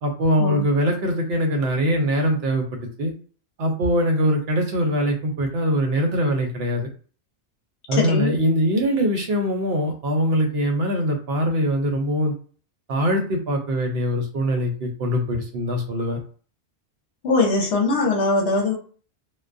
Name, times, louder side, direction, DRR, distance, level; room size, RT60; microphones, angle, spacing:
voice 1, 0.0-3.1 3.6-6.9 7.9-12.3 12.9-16.2, equal, 65° right, 3 dB, 0.8 m, -22 dB
voice 2, 7.9-8.4 17.2-18.7, left 3 dB, 70° left, 0 dB, 1.0 m, -21 dB
2.2 x 2.2 x 2.4 m, 0.41 s
omnidirectional pair, 1.2 m